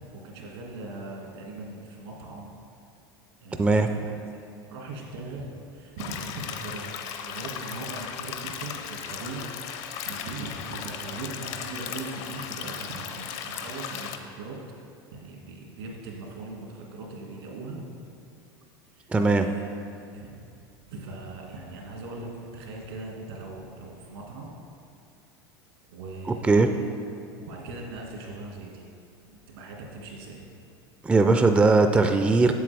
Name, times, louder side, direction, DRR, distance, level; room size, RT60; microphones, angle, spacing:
voice 1, 0.1-2.5 3.4-4.0 4.7-6.9 7.2-9.5 9.9-14.6 15.1-17.8 18.9-19.1 19.3-19.7 20.1-20.3 20.9-22.3 22.5-24.5 25.9-26.9 27.4-28.8 29.2-30.5, right 3 dB, 75° right, -1 dB, 1.9 m, -39 dB
voice 2, 3.6-3.9 19.1-19.5 26.4-26.7 31.0-32.5, right 3 dB, 10° right, 7 dB, 0.3 m, -19 dB
sound 1, 6.0-14.2, left 8 dB, 55° left, 0.6 m, -36 dB
7.7 x 7.3 x 3.4 m, 2.5 s
hypercardioid pair, 95°, 13 cm